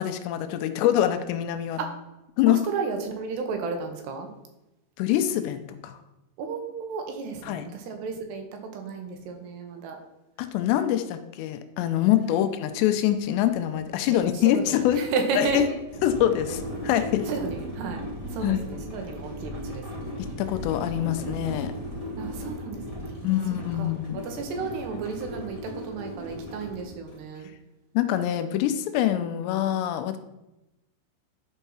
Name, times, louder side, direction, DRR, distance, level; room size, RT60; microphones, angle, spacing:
voice 1, 0.0-1.8 2.4-2.7 5.0-6.0 7.4-7.7 10.4-15.0 15.4-15.7 16.0-17.3 18.4-18.7 20.2-21.7 23.2-24.2 27.9-30.2, left 12 dB, 80° left, 9 dB, 2.8 m, -25 dB
voice 2, 2.5-4.3 6.4-8.5 8.7-10.0 12.3-12.4 14.1-15.8 16.5-16.6 17.2-20.2 22.2-27.5, right 4 dB, 75° right, 4 dB, 3.2 m, -33 dB
sound 1, 12.1-12.2 12.5-27.3, equal, 20° right, 0.9 m, -37 dB
11.5 x 4.6 x 5.6 m, 0.94 s
omnidirectional pair, 5.0 m